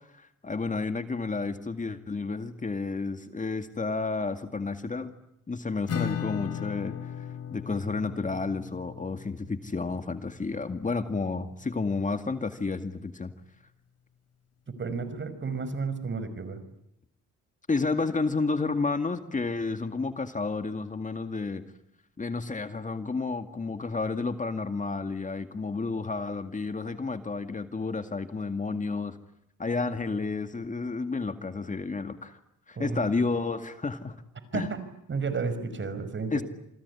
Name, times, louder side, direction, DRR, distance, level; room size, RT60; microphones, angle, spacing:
voice 1, 0.1-5.1 5.5-7.1 7.5-13.3 17.7-21.6 22.2-29.2 29.6-32.4 32.7-34.2 34.5-34.7 36.3-36.4, left 4 dB, 25° left, 8 dB, 2.2 m, -31 dB
Acoustic guitar / Strum, 5.9-11.3, left 8 dB, 55° left, 3.3 m, -37 dB
voice 2, 14.7-16.6 32.8-33.3 34.5-34.8 35.1-36.4, right 4 dB, 40° right, 12 dB, 5.8 m, -32 dB
28.0 x 20.5 x 9.9 m, 0.80 s
cardioid pair, 90°, 30 cm